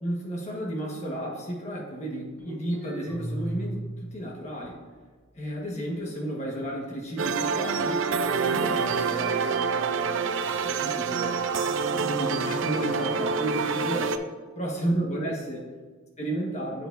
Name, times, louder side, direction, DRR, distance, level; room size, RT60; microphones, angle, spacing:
voice 1, 0.0-4.8 5.3-14.2 14.5-15.7 16.2-16.9, right 1 dB, 30° left, -2 dB, 1.3 m, -33 dB
sound 1, 2.4-4.1 4.5-5.4 5.9-6.0 6.6-6.8 7.5-10.0 11.2-11.7, right 1 dB, 10° left, 1.7 m, -38 dB
sound 2, 7.2-14.2, right 5 dB, 60° right, 0.4 m, -27 dB
7.6 x 7.4 x 2.6 m, 1.4 s
head